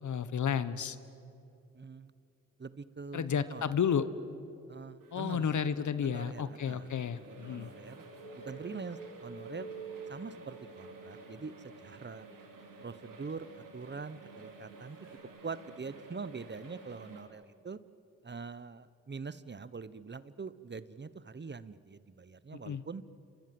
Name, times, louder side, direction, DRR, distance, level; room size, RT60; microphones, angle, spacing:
voice 1, 0.0-1.0 3.1-4.1 5.1-7.7 22.6-22.8, left 7 dB, 65° left, 14 dB, 1.3 m, -32 dB
voice 2, 1.7-2.1 2.6-3.6 4.7-5.6 6.0-8.0 8.3-9.7 10.1-12.3 12.8-15.0 15.4-17.8 18.2-23.0, right 4 dB, 35° right, 16 dB, 1.0 m, -44 dB
sound 1, 5.0-17.2, right 3 dB, 75° right, 3.7 m, -52 dB
sound 2, 7.3-11.8 15.0-15.2, right 4 dB, 35° left, 4.1 m, -48 dB
28.5 x 25.5 x 7.8 m, 2.7 s
supercardioid pair, 45°, 32 cm